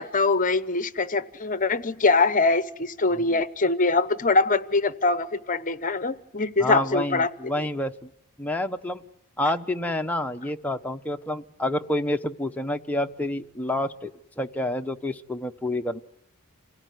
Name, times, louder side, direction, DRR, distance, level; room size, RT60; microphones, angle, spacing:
voice 1, 0.0-7.3 7.6-7.7, left 3 dB, 40° left, 15 dB, 1.0 m, -23 dB
voice 2, 6.6-8.1 8.4-9.0 9.4-14.1 14.4-16.0, left 1 dB, 5° left, 5 dB, 0.9 m, -28 dB
27.5 x 17.5 x 9.4 m, 0.84 s
head